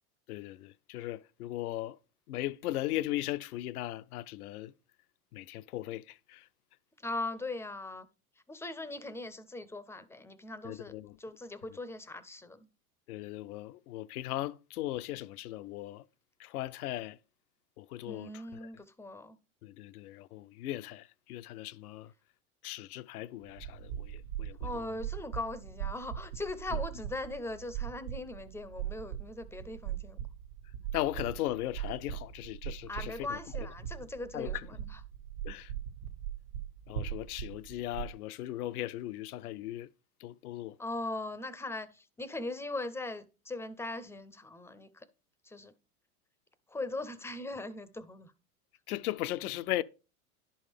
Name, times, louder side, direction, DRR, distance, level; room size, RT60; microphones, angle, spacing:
voice 1, 0.3-2.0 2.3-4.7 5.3-6.5 10.6-11.2 13.1-16.0 16.4-17.2 17.8-18.4 19.6-22.1 22.6-24.7 26.7-26.8 30.9-33.4 34.3-34.7 35.4-35.7 36.9-39.9 40.2-40.8 48.9-49.8, left 15 dB, 80° left, 0.5 m, -38 dB
voice 2, 7.0-8.1 8.5-12.7 18.1-19.4 24.6-30.2 32.9-35.0 40.8-45.1 45.4-45.7 46.7-48.3, left 2 dB, 5° left, 0.4 m, -40 dB
sound 1, 23.4-38.1, right 11 dB, 85° right, 1.4 m, -40 dB
10.5 x 5.5 x 3.4 m
hypercardioid pair, 95°, 44 cm